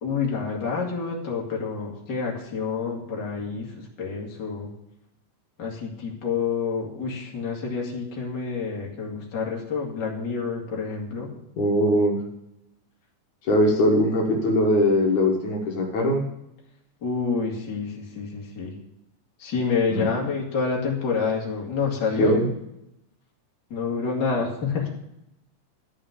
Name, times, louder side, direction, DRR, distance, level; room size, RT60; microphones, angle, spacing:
voice 1, 0.0-4.7 5.6-11.3 17.0-18.7 19.4-22.5 23.7-24.9, left 5 dB, 35° left, -2 dB, 2.7 m, -28 dB
voice 2, 11.6-12.2 13.4-16.2 19.9-20.1 22.2-22.5, equal, 65° left, 0 dB, 2.8 m, -21 dB
12.0 x 5.7 x 8.2 m, 0.84 s
omnidirectional pair, 3.7 m